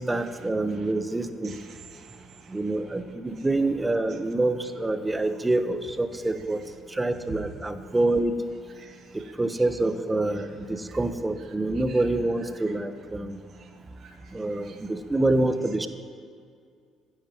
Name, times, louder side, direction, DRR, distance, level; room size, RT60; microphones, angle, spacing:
voice 1, 0.0-1.6 2.5-6.6 6.9-8.3 9.1-13.4 14.3-15.9, right 2 dB, 15° right, 10 dB, 1.1 m, -26 dB
voice 2, 1.4-2.8 3.4-3.5 7.3-7.4 8.8-9.6 10.9-11.0 11.9-12.0 12.6-12.7 13.5-13.7 14.0-14.8, right 6 dB, 50° right, 3 dB, 1.9 m, -48 dB
24.5 x 11.0 x 3.1 m, 2.3 s
hypercardioid pair, 50°, 0 cm